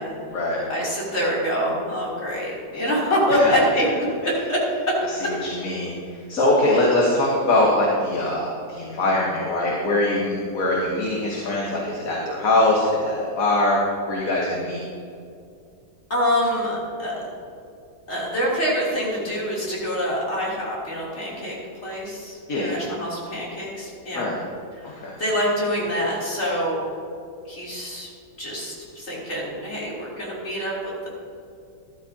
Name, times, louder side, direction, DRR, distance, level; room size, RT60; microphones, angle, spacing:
voice 1, 0.7-4.6 16.1-17.1 18.1-21.6 21.8-24.3 24.8-26.9 27.5-28.1 28.4-31.1, equal, 40° left, -7 dB, 3.5 m, -25 dB
voice 2, 5.2-13.8 14.1-14.8 22.5-22.8 24.1-24.4 24.8-25.1, left 1 dB, 55° left, -3 dB, 1.7 m, -22 dB
13.0 x 12.5 x 2.8 m, 2.5 s
omnidirectional pair, 1.8 m